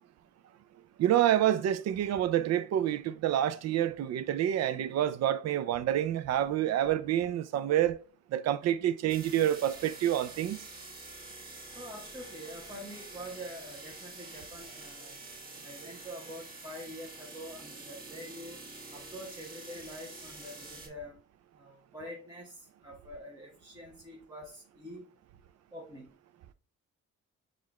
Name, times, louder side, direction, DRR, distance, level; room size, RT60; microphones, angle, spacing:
voice 1, 1.0-8.0 8.3-10.6, right 11 dB, 60° right, 0.4 m, -28 dB
sound 1, 9.1-20.9, right 2 dB, 30° right, 1.3 m, -47 dB
voice 2, 11.8-15.1 15.6-18.6 18.9-21.1 21.6-22.6 22.8-25.0 25.7-26.1, equal, 10° right, 1.0 m, -45 dB
6.5 x 2.5 x 3.1 m
cardioid pair, 90°, 30 cm